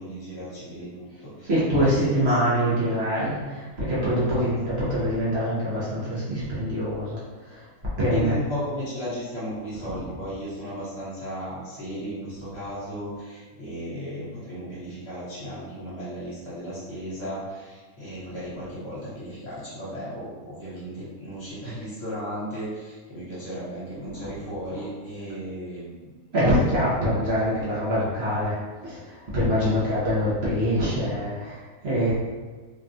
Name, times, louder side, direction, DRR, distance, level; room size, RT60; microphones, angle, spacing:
voice 1, 0.0-2.4 4.3-4.4 8.0-26.1 29.4-30.0, equal, 50° left, -9 dB, 1.3 m, -35 dB
voice 2, 1.5-7.2 7.5-7.6 8.0-8.3 9.9-10.0 24.1-24.3 26.3-32.2, equal, 50° right, -9 dB, 1.0 m, -24 dB
3.3 x 2.3 x 2.6 m, 1.4 s
omnidirectional pair, 1.5 m